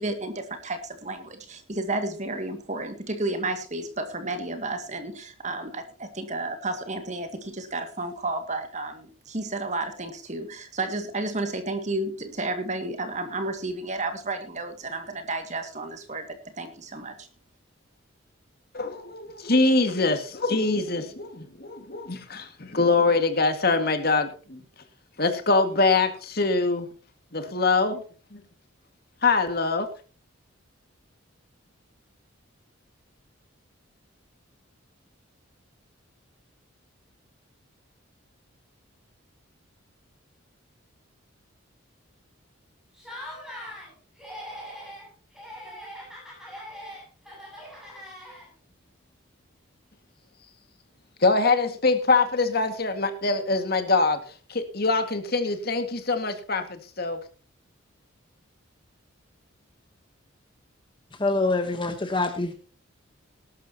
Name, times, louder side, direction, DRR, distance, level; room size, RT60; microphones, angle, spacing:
voice 1, 0.0-17.3, right 2 dB, 35° right, 7 dB, 2.1 m, -32 dB
voice 2, 18.7-24.6 25.2-26.9 27.3-28.0 28.3-28.4 29.2-29.9 51.2-54.2 54.5-57.2, left 3 dB, 50° left, 8 dB, 2.0 m, -24 dB
Laughter, 42.9-43.9 44.2-45.1 45.3-48.7, equal, ahead, 7.7 m, -41 dB
voice 3, 61.1-62.5, left 2 dB, 25° left, 7 dB, 1.1 m, -25 dB
19.0 x 12.0 x 2.9 m, 0.38 s
head